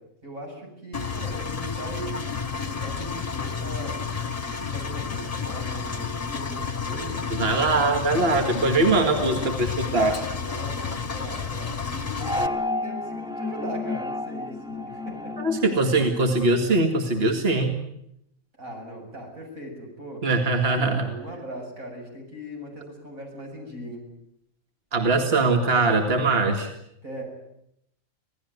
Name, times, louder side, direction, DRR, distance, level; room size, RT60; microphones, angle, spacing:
voice 1, 0.2-4.0 4.4-7.3 8.2-9.3 10.3-15.3 18.5-20.3 20.7-24.1 27.0-27.2, right 1 dB, 90° right, 1 dB, 8.3 m, -39 dB
Engine, 0.9-12.5, left 6 dB, 30° left, 1.4 m, -31 dB
voice 2, 7.4-10.2 15.4-17.7 20.2-21.1 24.9-26.7, right 3 dB, 45° right, 4 dB, 2.4 m, -22 dB
sound 1, 12.2-16.8, left 2 dB, 5° right, 0.7 m, -31 dB
26.5 x 18.0 x 9.5 m, 0.77 s
omnidirectional pair, 1.4 m